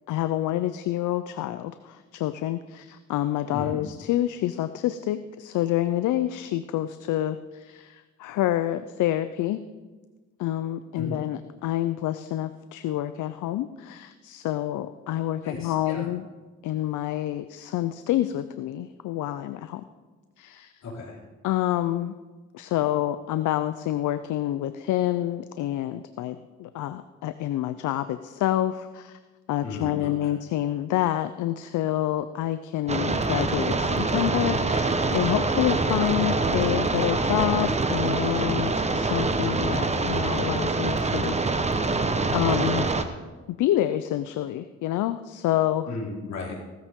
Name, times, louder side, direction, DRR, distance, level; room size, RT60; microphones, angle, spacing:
voice 1, 0.1-9.6 10.4-16.2 16.6-19.8 20.4-20.7 21.4-22.1 22.5-29.2 29.5-41.6 42.3-42.9 43.5-45.9, left 13 dB, 80° left, 11 dB, 0.6 m, -28 dB
voice 2, 15.4-16.1 20.8-21.2 29.6-30.3 45.9-46.6, left 3 dB, 60° left, -4 dB, 4.4 m, -35 dB
sound 1, 32.9-43.0, right 3 dB, 20° right, 1.1 m, -25 dB
17.5 x 13.5 x 3.7 m, 1.3 s
cardioid pair, 90°, 30 cm